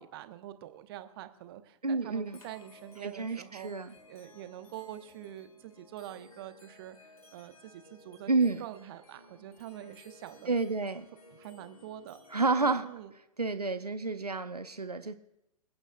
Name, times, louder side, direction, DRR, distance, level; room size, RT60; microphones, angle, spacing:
voice 1, 0.0-3.7 4.1-10.5 11.3-12.2 12.5-13.1, right 12 dB, 40° right, 10 dB, 1.0 m, -45 dB
voice 2, 1.8-2.4 3.0-3.9 8.3-8.6 10.5-11.1 12.3-12.9 13.4-15.1, right 3 dB, 85° right, 10 dB, 0.7 m, -30 dB
sound 1, 2.2-13.0, left 2 dB, 70° left, 2.4 m, -58 dB
26.5 x 8.9 x 2.4 m, 0.88 s
figure-of-eight pair, 110°, 19 cm